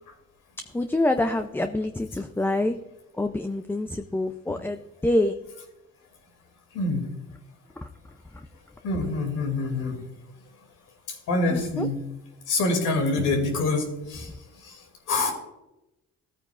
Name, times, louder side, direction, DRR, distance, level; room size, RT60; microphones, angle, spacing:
voice 1, 0.7-2.8 3.2-5.4 7.8-7.9 8.3-8.4 11.5-11.9, left 1 dB, 5° left, 7 dB, 0.5 m, -26 dB
voice 2, 8.8-10.0 11.3-12.0 12.5-14.3 14.6-15.3, left 2 dB, 85° left, 3 dB, 2.7 m, -26 dB
15.5 x 9.0 x 2.5 m, 0.94 s
cardioid pair, 90°, 30 cm